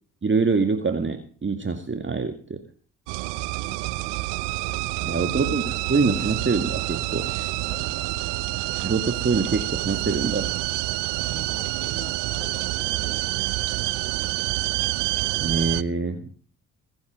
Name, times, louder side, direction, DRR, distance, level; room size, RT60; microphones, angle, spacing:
voice 1, 0.2-2.6 5.0-7.3 8.8-10.5 15.4-16.3, right 4 dB, 25° right, 7 dB, 2.2 m, -25 dB
sound 1, 3.1-15.8, right 20 dB, 70° right, 0.8 m, -27 dB
voice 2, 5.0-5.3 5.6-5.7 7.6-7.9 11.2-13.2 13.6-14.0, left 3 dB, 10° left, 3 dB, 7.4 m, -44 dB
22.5 x 8.3 x 5.1 m, 0.42 s
hypercardioid pair, 50°, 43 cm